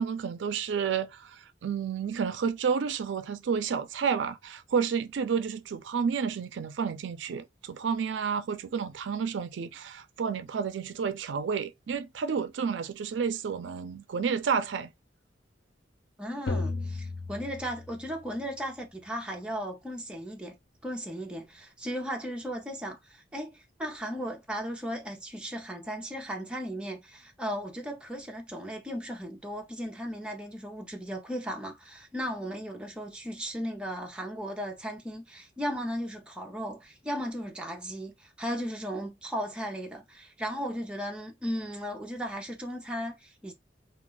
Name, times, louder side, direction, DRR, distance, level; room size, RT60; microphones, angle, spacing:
voice 1, 0.0-14.9, right 6 dB, 85° right, 0.4 m, -30 dB
voice 2, 16.2-20.6 20.8-43.5, equal, 5° right, 0.6 m, -36 dB
sound 1, 16.5-18.4, left 3 dB, 75° left, 0.6 m, -35 dB
2.3 x 2.3 x 3.0 m
head